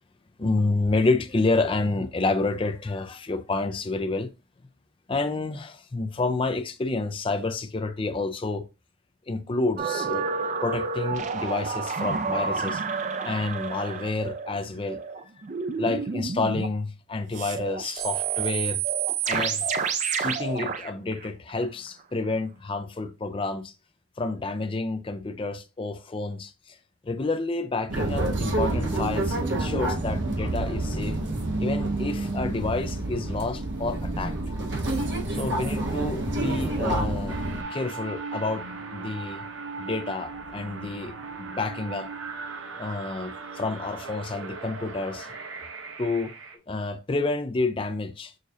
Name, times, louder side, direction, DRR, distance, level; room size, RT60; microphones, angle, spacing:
voice 1, 0.4-4.3 5.1-8.6 9.3-10.3 10.6-12.8 13.2-15.0 15.8-18.8 19.2-19.6 20.2-23.7 24.2-26.8 27.0-31.2 31.6-34.4 35.3-39.4 39.8-42.1 42.8-45.3 46.0-46.3 46.7-48.4, left 3 dB, 25° left, 0.4 m, -29 dB
sound 1, 9.8-16.7 17.3-21.9 22.2-22.3, right 5 dB, 35° right, 0.4 m, -29 dB
sound 2, 27.9-37.6, right 2 dB, 60° right, 0.9 m, -28 dB
sound 3, 37.3-46.6, right 4 dB, 80° right, 0.8 m, -38 dB
6.5 x 2.5 x 2.7 m
head